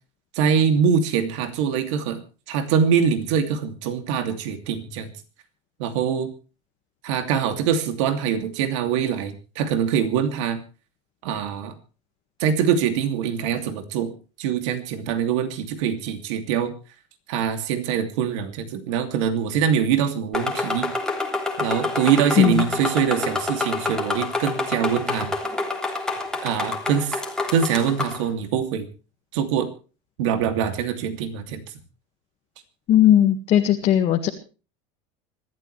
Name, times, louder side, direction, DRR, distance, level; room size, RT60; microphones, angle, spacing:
voice 1, 0.3-5.1 5.8-6.3 7.0-10.6 11.2-11.7 12.4-14.1 14.4-16.7 17.3-20.9 21.6-25.3 26.4-27.2 27.5-28.9 29.3-29.7 30.2-31.6, right 7 dB, 80° right, 7 dB, 2.8 m, -23 dB
sound 1, 20.3-28.2, left 2 dB, 5° left, 3.2 m, -27 dB
voice 2, 32.9-34.3, left 11 dB, 40° left, 3 dB, 1.9 m, -17 dB
26.0 x 13.5 x 3.4 m, 0.35 s
cardioid pair, 145°, 15 cm